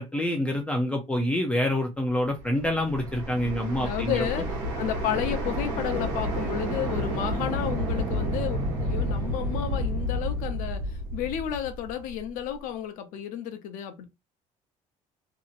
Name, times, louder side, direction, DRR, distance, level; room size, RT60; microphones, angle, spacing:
voice 1, 0.0-4.2, left 1 dB, 10° left, 0.5 m, -27 dB
sound 1, 2.3-12.3, equal, 85° right, 1.4 m, -30 dB
voice 2, 3.7-4.4 4.8-14.0, left 10 dB, 75° left, 0.7 m, -32 dB
2.8 x 2.7 x 2.4 m
cardioid pair, 160°, 14 cm